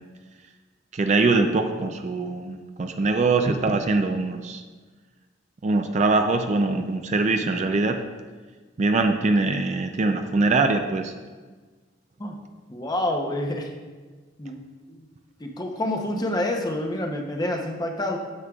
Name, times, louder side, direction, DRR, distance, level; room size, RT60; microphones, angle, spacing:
voice 1, 0.9-4.6 5.6-8.0 8.8-11.1, right 3 dB, 35° right, 6 dB, 0.4 m, -22 dB
voice 2, 12.7-13.7 14.4-14.6 14.9-15.0 15.4-18.2, left 1 dB, 20° left, 2 dB, 0.7 m, -28 dB
9.5 x 7.2 x 2.3 m, 1.4 s
head